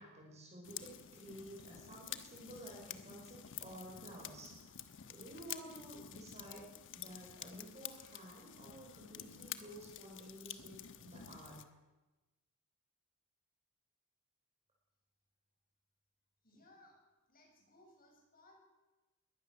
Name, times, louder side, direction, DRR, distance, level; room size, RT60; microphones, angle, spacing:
voice 1, 0.0-4.5 5.1-11.7 16.5-16.7, right 1 dB, 30° right, -2 dB, 5.7 m, -52 dB
sound 1, 0.6-11.6, left 10 dB, 60° left, 1.1 m, -50 dB
voice 2, 16.4-17.0 17.3-18.6, left 1 dB, 40° left, 1 dB, 6.8 m, -64 dB
22.0 x 18.0 x 6.8 m, 1.1 s
head